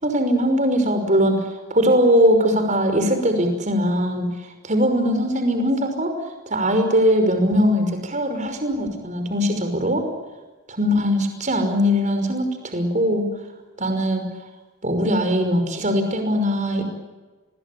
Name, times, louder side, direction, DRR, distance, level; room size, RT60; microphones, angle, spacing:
voice 1, 0.0-4.3 4.6-6.1 6.5-10.1 10.7-13.3 13.8-14.2 14.8-16.8, equal, 35° right, 7 dB, 5.7 m, -20 dB
29.5 x 22.5 x 8.7 m, 1.2 s
head